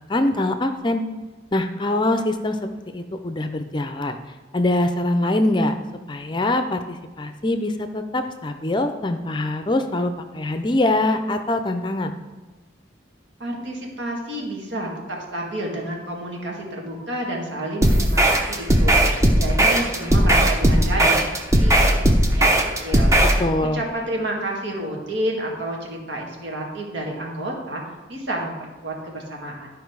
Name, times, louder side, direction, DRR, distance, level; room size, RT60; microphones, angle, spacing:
voice 1, 0.1-1.0 1.5-4.2 4.5-5.7 6.1-12.1 23.4-23.8, left 1 dB, 25° left, 8 dB, 0.5 m, -23 dB
voice 2, 13.4-21.3 21.6-22.5 22.8-23.1 23.7-27.8 28.1-28.5 28.8-29.7, right 1 dB, 75° right, -1 dB, 2.1 m, -30 dB
sound 1, 17.8-23.4, right 1 dB, 15° right, 0.7 m, -17 dB
12.0 x 4.9 x 4.7 m, 1.3 s
head